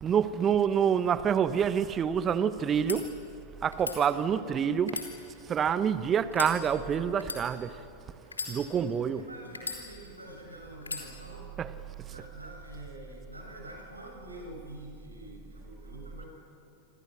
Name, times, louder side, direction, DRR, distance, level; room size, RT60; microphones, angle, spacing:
voice 1, 0.0-3.1 3.6-7.9 8.5-9.3 11.6-12.3, right 8 dB, 25° right, 1.2 m, -27 dB
sound 1, 2.7-3.0 3.7-4.0 4.8-5.7 6.3-6.6 7.2-7.4 8.3-9.0 9.5-10.2 10.8-11.1, left 4 dB, 75° left, 3.5 m, -37 dB
voice 2, 9.1-11.6 12.0-16.3, right 1 dB, 80° right, 7.8 m, -46 dB
27.0 x 27.0 x 6.4 m
figure-of-eight pair, 90°, 0 cm